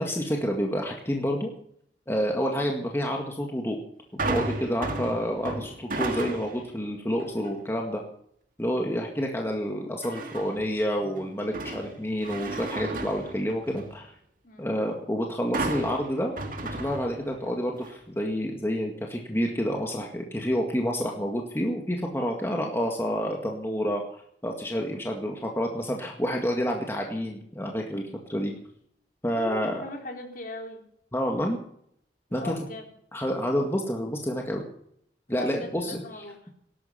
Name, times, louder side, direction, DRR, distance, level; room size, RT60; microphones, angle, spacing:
voice 1, 0.0-1.5 2.1-3.8 4.2-8.0 8.6-14.1 14.6-16.3 16.7-28.6 29.2-29.8 31.1-31.6 32.3-32.5 33.1-34.6 35.3-36.2, equal, 15° left, 1 dB, 1.9 m, -29 dB
sound 1, 4.2-6.7 7.2-7.6 10.0-10.7 11.2-14.0 15.5-17.5 17.8-17.9, right 2 dB, 50° right, 2.1 m, -33 dB
voice 2, 29.4-30.8 32.3-32.9 35.3-36.5, left 2 dB, 50° left, 2 dB, 3.8 m, -39 dB
18.0 x 12.0 x 5.8 m, 0.68 s
head